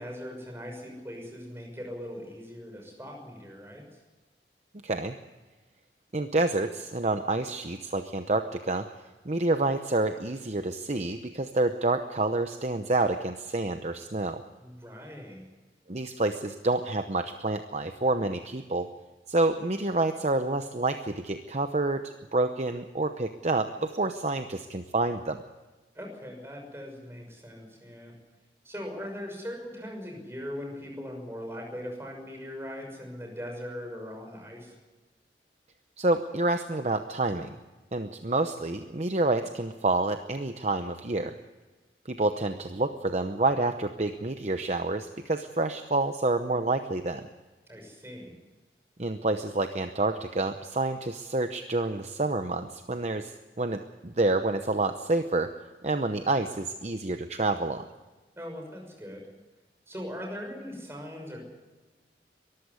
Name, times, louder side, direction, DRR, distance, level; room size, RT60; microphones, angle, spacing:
voice 1, 0.0-3.8 14.6-15.4 25.9-28.1 28.6-34.7 47.7-48.4 58.4-59.2 59.9-61.4, equal, 15° right, 1 dB, 6.2 m, -40 dB
voice 2, 4.8-5.2 6.1-8.9 9.2-14.4 15.9-18.9 19.3-25.4 36.0-37.6 37.9-41.3 42.1-47.3 49.0-55.5 55.8-57.8, right 2 dB, 40° right, 8 dB, 0.8 m, -28 dB
23.0 x 14.5 x 8.3 m, 1.2 s
head